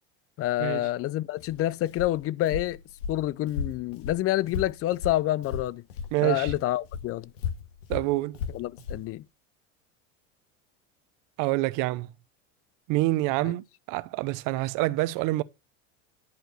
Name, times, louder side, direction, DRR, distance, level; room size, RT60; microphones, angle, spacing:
voice 1, 0.4-2.8 3.1-5.8 6.2-7.3 8.5-9.2 13.4-13.5, left 15 dB, 40° left, 0.6 m, -28 dB
Walk footsteps, 1.4-6.2 6.4-9.1, left 6 dB, 90° left, 1.8 m, -35 dB
voice 2, 6.1-6.5 7.9-8.4 11.4-12.1 12.9-15.4, right 19 dB, 60° right, 0.9 m, -27 dB
10.5 x 4.7 x 6.3 m
supercardioid pair, 105°, 37 cm